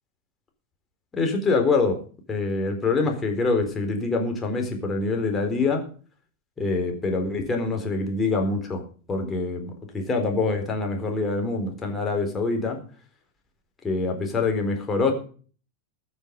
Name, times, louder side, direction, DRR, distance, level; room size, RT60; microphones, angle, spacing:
voice 1, 1.1-2.0 2.3-5.8 6.6-8.8 9.1-12.8 13.8-15.1, left 3 dB, 20° left, 3 dB, 4.2 m, -25 dB
20.5 x 7.0 x 5.3 m, 0.41 s
figure-of-eight pair, 90°, 0 cm